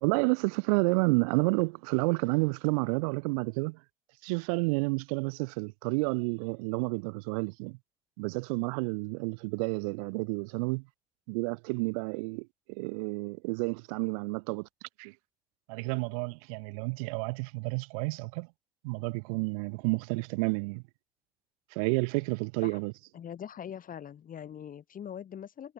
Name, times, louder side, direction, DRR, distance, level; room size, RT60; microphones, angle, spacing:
voice 1, 0.0-3.8 4.2-7.8 8.2-10.8 11.3-14.7 15.0-15.1 15.7-18.5 18.8-20.8 21.7-22.9, right 31 dB, 75° right, 0.4 m, -30 dB
voice 2, 23.1-25.7, left 9 dB, 50° left, 1.4 m, -42 dB
figure-of-eight pair, 45°, 19 cm